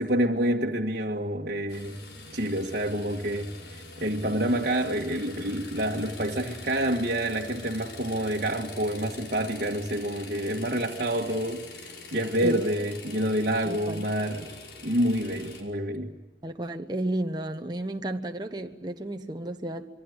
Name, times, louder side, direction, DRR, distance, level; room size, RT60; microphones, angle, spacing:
voice 1, 0.0-2.0 2.3-14.5 14.8-16.1, right 1 dB, 55° right, 1.6 m, -28 dB
sound 1, 1.7-15.6, left 2 dB, 85° left, 5.5 m, -44 dB
voice 2, 13.6-14.1 16.4-19.9, right 1 dB, 25° right, 1.1 m, -32 dB
27.0 x 23.5 x 8.1 m
head